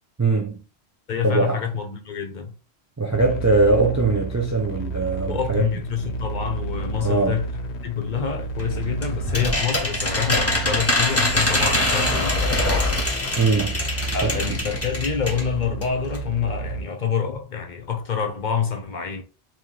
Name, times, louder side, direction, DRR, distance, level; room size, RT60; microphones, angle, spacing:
voice 1, 0.2-0.6 1.2-1.6 3.0-5.7 7.0-7.4 13.4-13.8 14.2-14.3, right 3 dB, 25° right, 0.4 m, -21 dB
voice 2, 1.1-2.6 5.3-13.0 14.1-19.2, left 7 dB, 55° left, 0.7 m, -27 dB
sound 1, 3.1-16.8, right 4 dB, 85° left, 0.9 m, -32 dB
sound 2, 8.6-15.5 15.8-15.9 16.1-16.2, left 2 dB, 15° left, 0.7 m, -24 dB
3.0 x 3.0 x 3.7 m
omnidirectional pair, 1.1 m